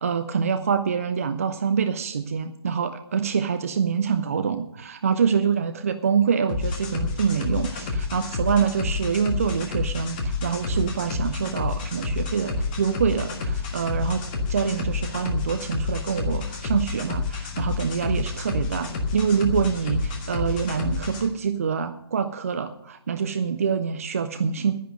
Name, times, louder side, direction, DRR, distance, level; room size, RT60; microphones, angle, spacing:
voice 1, 0.0-24.7, right 6 dB, 35° right, 10 dB, 0.6 m, -25 dB
sound 1, 6.5-21.2, left 4 dB, 20° left, 1.5 m, -29 dB
11.0 x 10.5 x 6.4 m, 0.79 s
figure-of-eight pair, 145°, 14 cm